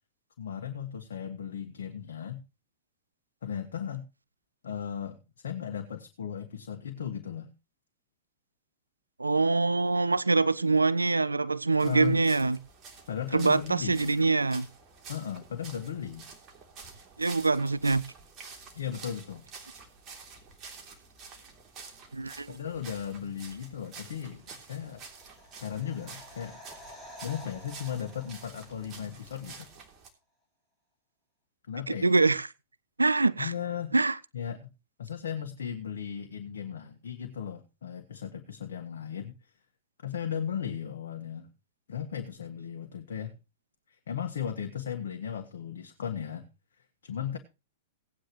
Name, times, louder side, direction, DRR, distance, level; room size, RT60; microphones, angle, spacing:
voice 1, 0.4-2.4 3.4-4.0 4.6-5.2 5.4-7.5 11.8-12.1 13.1-14.3 15.1-16.3 18.7-19.4 22.5-25.0 25.6-26.6 27.2-29.7 31.7-32.3 33.4-33.9 34.3-34.7 35.0-39.3 40.0-41.5 41.9-43.4 43.9-46.5 47.0-47.4, left 8 dB, 70° left, 1.6 m, -36 dB
voice 2, 9.2-12.6 13.3-14.7 17.2-18.0 22.1-22.6 31.9-32.5 33.0-33.5 33.9-34.2, right 3 dB, 90° right, 0.5 m, -24 dB
sound 1, 11.8-30.1, right 5 dB, 35° right, 3.2 m, -49 dB
sound 2, 24.6-29.4 29.7-29.8, left 1 dB, 5° right, 5.5 m, -51 dB
17.5 x 9.3 x 3.1 m
figure-of-eight pair, 105°, 0 cm